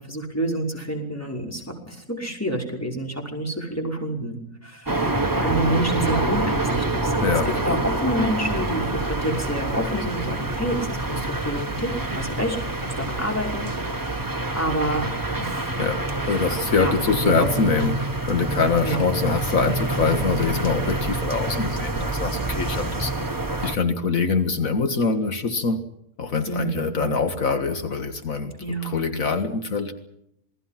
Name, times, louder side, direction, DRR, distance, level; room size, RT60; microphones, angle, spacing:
voice 1, 0.0-12.6 12.8-14.2 14.5-15.7 16.3-16.5 16.8-17.7 18.8-19.2 26.5-27.1 28.6-29.1, right 1 dB, 10° left, 1 dB, 5.5 m, -28 dB
sound 1, 4.9-23.8, right 2 dB, 15° right, 1.6 m, -27 dB
voice 2, 7.2-7.8 15.8-17.9 18.3-23.1 23.6-25.8 26.2-29.9, left 4 dB, 75° left, 7 dB, 2.1 m, -24 dB
27.5 x 20.5 x 5.9 m, 0.78 s
omnidirectional pair, 1.4 m